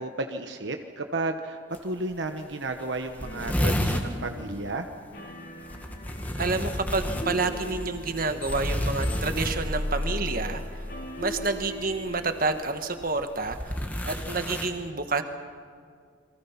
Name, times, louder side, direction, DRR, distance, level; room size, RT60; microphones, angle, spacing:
voice 1, 0.0-4.9, right 2 dB, 65° right, 5 dB, 1.1 m, -33 dB
sound 1, 1.7-1.8 2.1-2.2 2.5-2.6 2.8-4.1 5.6-10.0 11.3-11.6 12.5-14.7, equal, 10° left, 1.7 m, -30 dB
sound 2, 3.2-13.3, left 1 dB, 55° left, 3.6 m, -45 dB
sound 3, 5.7-13.5, left 1 dB, 25° left, 3.3 m, -37 dB
voice 2, 6.4-10.6 11.2-13.7 14.0-15.2, right 3 dB, 45° right, 7 dB, 1.4 m, -29 dB
29.0 x 23.0 x 5.9 m, 2.1 s
head